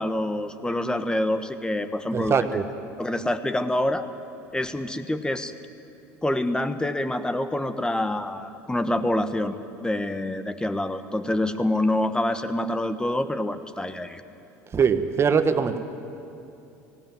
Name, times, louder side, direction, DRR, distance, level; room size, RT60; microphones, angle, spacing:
voice 1, 0.0-2.4 3.0-4.1 4.5-5.5 6.2-14.2, left 1 dB, 10° left, 10 dB, 1.2 m, -26 dB
voice 2, 2.1-2.6 14.7-15.8, right 6 dB, 35° right, 9 dB, 1.3 m, -22 dB
18.0 x 16.5 x 9.3 m, 2.7 s
hypercardioid pair, 80°, 8 cm